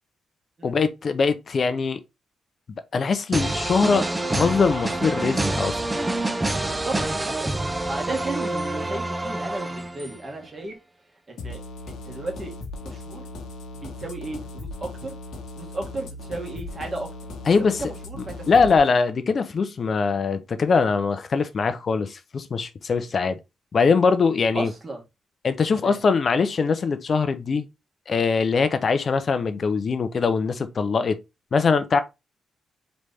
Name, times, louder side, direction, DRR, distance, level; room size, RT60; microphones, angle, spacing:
voice 1, 0.6-2.0 2.9-4.1 4.3-5.8 17.5-17.8 18.5-23.4 23.7-24.7 25.4-27.7 28.1-31.2 31.5-32.0, left 5 dB, 40° left, 0.6 m, -22 dB
sound 1, 3.3-10.3, right 2 dB, 15° right, 0.4 m, -27 dB
voice 2, 6.6-6.9 7.2-7.4 7.6-10.7 11.3-11.6 11.8-12.5 12.8-13.3 13.8-15.1 15.6-17.1 17.5-18.7 24.5-25.0 25.7-26.0, right 2 dB, 30° right, 1.4 m, -34 dB
sound 2, 11.4-18.8, left 2 dB, 90° left, 1.0 m, -38 dB
4.0 x 3.2 x 3.5 m
cardioid pair, 140°, 0 cm